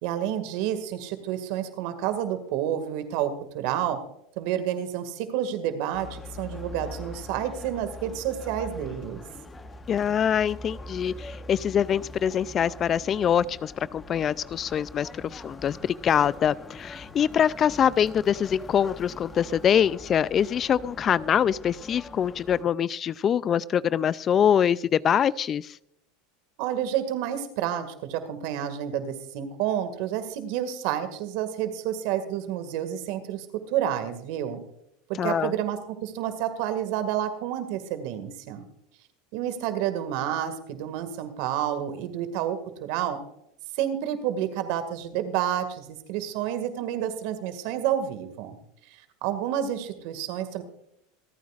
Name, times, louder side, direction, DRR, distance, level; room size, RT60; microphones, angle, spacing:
voice 1, 0.0-4.0 4.4-9.2 26.6-34.6 35.1-38.6 39.3-43.2 43.8-48.6 49.2-50.6, right 10 dB, 65° right, 10 dB, 1.9 m, -29 dB
sound 1, 5.9-22.6, left 2 dB, 15° left, 1.1 m, -43 dB
voice 2, 9.9-25.8 35.2-35.5, left 8 dB, 35° left, 20 dB, 0.3 m, -24 dB
26.5 x 9.4 x 2.4 m, 0.77 s
supercardioid pair, 110°, 0 cm